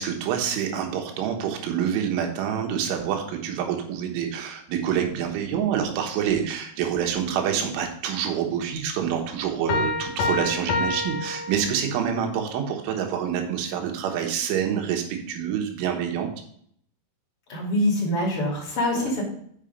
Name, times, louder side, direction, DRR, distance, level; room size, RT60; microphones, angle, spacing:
voice 1, 0.0-16.3 19.0-19.1, right 8 dB, 85° right, 4 dB, 3.7 m, -27 dB
sound 1, 9.7-12.2, left 3 dB, 80° left, 1.9 m, -28 dB
voice 2, 17.5-19.2, left 1 dB, 35° left, -2 dB, 3.0 m, -24 dB
7.3 x 6.1 x 5.1 m, 0.65 s
omnidirectional pair, 5.4 m